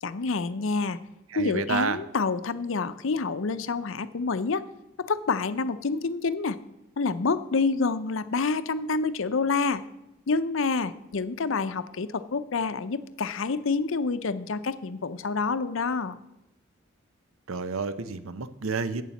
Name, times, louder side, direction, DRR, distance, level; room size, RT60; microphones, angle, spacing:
voice 1, 0.0-1.0 1.4-4.6 5.0-6.6 7.0-9.8 10.3-16.2, left 4 dB, 70° left, 12 dB, 0.6 m, -28 dB
voice 2, 1.3-2.0 17.5-19.0, right 4 dB, 85° right, 13 dB, 0.7 m, -30 dB
8.5 x 7.2 x 7.1 m, 0.88 s
head